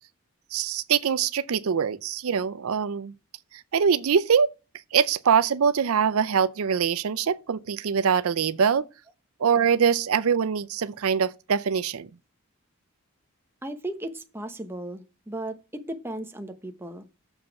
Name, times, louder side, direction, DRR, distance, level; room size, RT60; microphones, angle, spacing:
voice 1, 0.5-3.1 3.5-4.5 4.9-8.9 9.4-12.1, right 7 dB, 80° right, 0.5 m, -23 dB
voice 2, 13.6-15.6 15.9-17.1, right 1 dB, 10° right, 0.9 m, -35 dB
7.1 x 5.5 x 6.9 m
head